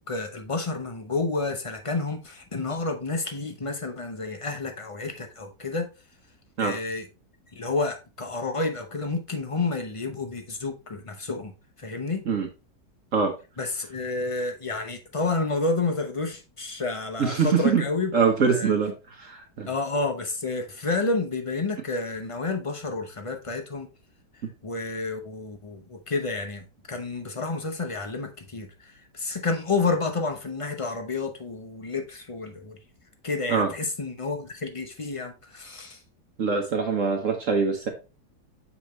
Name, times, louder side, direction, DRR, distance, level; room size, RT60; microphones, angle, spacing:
voice 1, 0.0-5.9 6.6-7.1 7.6-11.5 11.8-12.2 13.6-18.1 18.4-18.7 19.7-23.9 24.6-28.7 29.1-32.8 33.2-36.0, left 3 dB, 50° left, 0.3 m, -30 dB
voice 2, 17.2-17.8 18.1-18.9 19.2-19.7 33.5-33.7 36.4-37.9, right 5 dB, 50° right, 1.2 m, -23 dB
7.2 x 5.2 x 3.1 m
omnidirectional pair, 2.0 m